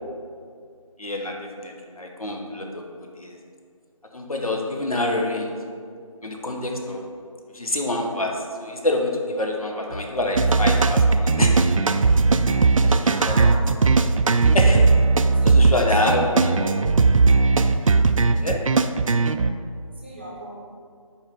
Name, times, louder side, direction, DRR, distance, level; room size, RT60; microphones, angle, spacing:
voice 1, 1.0-2.8 3.2-3.3 4.1-5.5 6.2-7.0 7.5-11.6 12.8-13.5 14.5-14.9 15.4-16.4 18.4-18.6, left 2 dB, 85° left, 1 dB, 1.2 m, -26 dB
sound 1, 10.3-19.5, right 4 dB, 70° right, 0.4 m, -18 dB
voice 2, 13.1-13.7 15.4-16.7 20.0-20.5, right 1 dB, 20° right, -4 dB, 0.7 m, -36 dB
5.6 x 4.5 x 5.1 m, 2.2 s
figure-of-eight pair, 165°, 18 cm